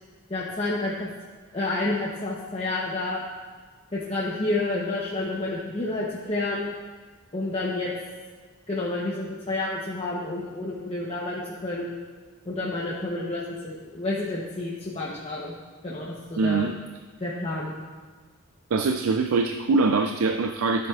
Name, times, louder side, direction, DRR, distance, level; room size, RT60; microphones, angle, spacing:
voice 1, 0.3-1.1 1.5-3.2 3.9-6.7 7.3-7.9 8.7-11.9 12.5-15.5 15.8-16.7 17.2-17.7, left 2 dB, 30° left, -5 dB, 0.8 m, -29 dB
voice 2, 16.4-16.7 18.7-20.9, right 3 dB, 75° right, 5 dB, 0.4 m, -23 dB
13.5 x 7.5 x 2.4 m, 1.5 s
head